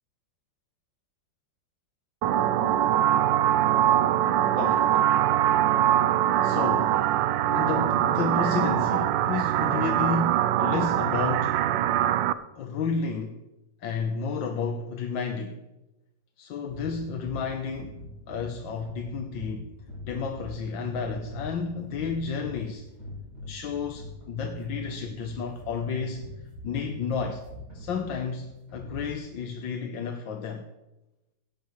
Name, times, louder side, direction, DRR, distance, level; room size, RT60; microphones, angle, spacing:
sound 1, 2.2-12.3, right 11 dB, 80° right, 1.3 m, -23 dB
voice 1, 4.4-5.0 5.3-5.5 5.8-5.9 6.4-7.0 7.4-11.6 12.6-13.4 13.8-15.6 16.4-18.0 18.3-19.7 20.1-22.9 23.4-26.3 26.6-27.4 27.7-30.7, left 5 dB, 85° left, 1.7 m, -31 dB
sound 2, 16.7-29.4, left 1 dB, 35° right, 5.9 m, -43 dB
17.5 x 14.0 x 3.2 m
omnidirectional pair, 2.0 m